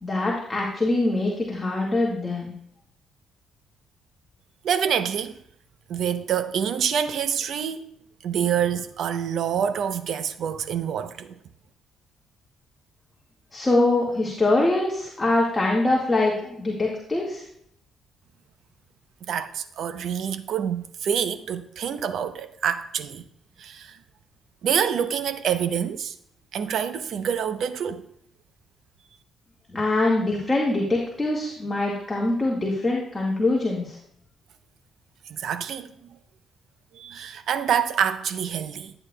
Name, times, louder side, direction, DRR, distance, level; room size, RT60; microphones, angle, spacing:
voice 1, 0.0-2.5 13.5-17.4 29.7-34.0, left 2 dB, 20° left, 1.7 m, -23 dB
voice 2, 4.6-5.4 5.9-7.9 8.2-11.4 19.3-23.2 23.6-24.0 24.6-26.2 26.5-28.0 35.3-36.2 36.9-38.9, right 8 dB, 70° right, 0.6 m, -27 dB
11.5 x 8.7 x 2.2 m
cardioid pair, 90°, 0 cm